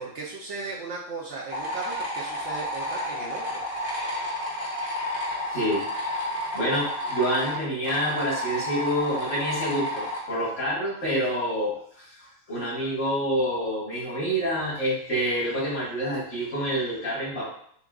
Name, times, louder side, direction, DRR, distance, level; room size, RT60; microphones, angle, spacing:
voice 1, 0.0-3.6, right 4 dB, 65° right, -4 dB, 1.0 m, -36 dB
sound 1, 1.5-10.2, left 1 dB, 30° left, 1.0 m, -31 dB
voice 2, 5.5-6.0 6.3-17.5, equal, 65° left, -7 dB, 2.3 m, -27 dB
6.9 x 2.4 x 2.4 m, 0.65 s
omnidirectional pair, 1.3 m